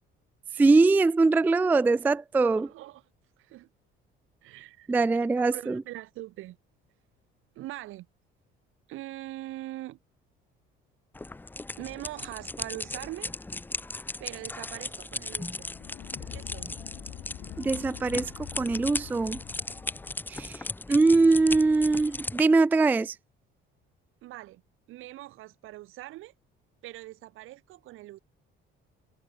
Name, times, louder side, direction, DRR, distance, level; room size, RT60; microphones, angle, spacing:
voice 1, 0.6-2.7 4.9-5.8 17.6-19.4 20.3-20.6 20.9-23.1, right 3 dB, 10° right, 0.3 m, -22 dB
voice 2, 2.4-3.0 3.4-3.7 4.4-6.6 7.6-8.1 8.9-10.0 11.8-13.3 14.2-15.7 16.3-16.8 24.2-24.6 24.9-26.3 26.8-28.2, right 16 dB, 75° right, 3.6 m, -42 dB
sound 1, 11.1-22.4, left 2 dB, 10° left, 1.0 m, -37 dB
sound 2, 15.4-20.3, left 15 dB, 65° left, 2.5 m, -44 dB
cardioid pair, 150°, 21 cm